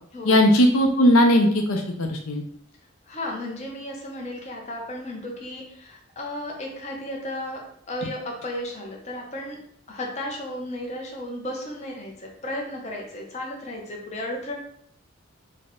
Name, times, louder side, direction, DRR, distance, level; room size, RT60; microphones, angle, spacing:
voice 1, 0.2-2.4, equal, 80° left, 3 dB, 0.6 m, -18 dB
voice 2, 3.1-7.6 7.9-9.6 9.9-14.5, left 1 dB, 30° left, 0 dB, 0.7 m, -34 dB
4.0 x 2.1 x 3.6 m, 0.64 s
head